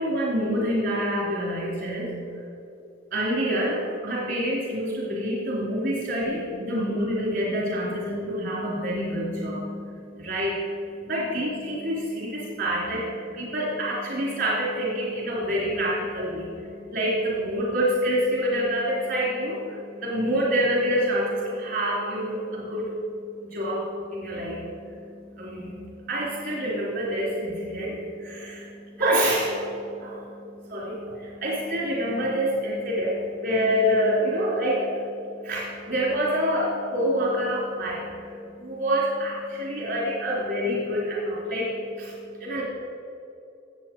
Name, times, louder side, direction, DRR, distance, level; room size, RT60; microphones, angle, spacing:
voice 1, 0.0-2.1 3.1-42.6, equal, 55° right, -5 dB, 3.3 m, -27 dB
17.0 x 7.5 x 4.5 m, 2.7 s
head